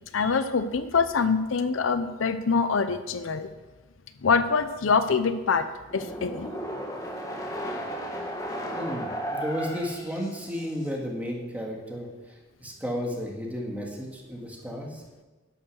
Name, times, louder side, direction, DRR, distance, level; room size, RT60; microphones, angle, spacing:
voice 1, 0.1-3.5 4.2-6.5, left 5 dB, 75° left, 11 dB, 0.6 m, -25 dB
sound 1, 5.9-10.9, right 1 dB, 15° left, 1.9 m, -34 dB
voice 2, 8.7-12.1 12.6-15.0, equal, 10° right, -1 dB, 1.9 m, -33 dB
11.5 x 6.9 x 6.5 m, 1.3 s
head